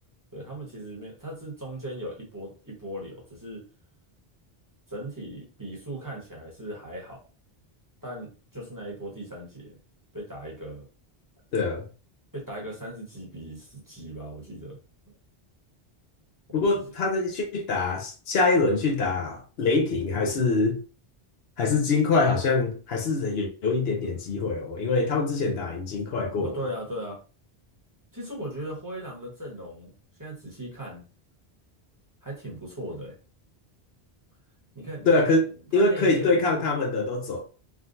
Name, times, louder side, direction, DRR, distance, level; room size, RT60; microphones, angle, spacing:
voice 1, 0.3-3.6 4.9-7.2 8.0-9.8 10.1-10.9 12.3-14.8 15.1-15.2 16.5-16.8 26.4-27.2 28.1-29.9 30.2-31.0 32.2-33.1 34.7-35.4 35.7-36.4, right 1 dB, 20° right, 1.0 m, -38 dB
voice 2, 11.5-11.8 16.5-20.8 21.6-26.6 35.1-35.4 35.7-37.4, left 3 dB, 75° left, 0.9 m, -24 dB
3.7 x 2.3 x 2.5 m
omnidirectional pair, 1.1 m